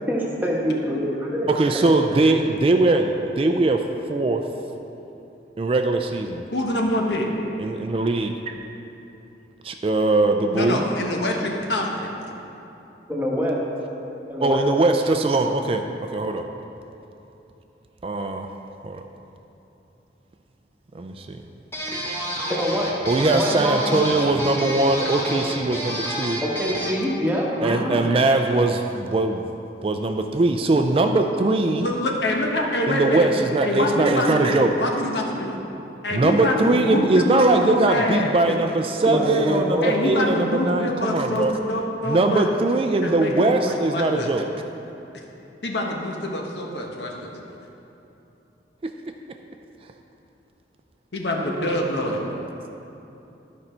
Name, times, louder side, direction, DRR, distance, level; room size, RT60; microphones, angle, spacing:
voice 1, 0.1-1.5 13.1-13.6 14.3-14.6 22.5-22.9 23.3-24.0 26.4-28.0 39.1-40.1, equal, 10° right, -4 dB, 1.1 m, -25 dB
voice 2, 1.5-4.5 5.6-6.4 7.6-8.5 9.6-10.8 14.4-16.5 18.0-18.5 18.8-19.0 20.9-21.4 23.1-26.4 27.6-29.4 29.8-31.9 32.9-34.7 36.1-41.5 42.0-44.4 48.8-48.9 51.4-51.8 52.1-52.5, right 2 dB, 30° right, 5 dB, 0.3 m, -21 dB
voice 3, 6.5-7.3 10.5-12.1 31.8-33.3 33.6-35.5 36.0-38.6 39.8-42.5 43.0-44.3 45.6-47.4 51.1-52.3, left 1 dB, 75° left, 0 dB, 1.1 m, -25 dB
sound 1, 21.7-27.1, equal, 15° left, 1.1 m, -30 dB
12.0 x 5.4 x 4.4 m, 2.9 s
head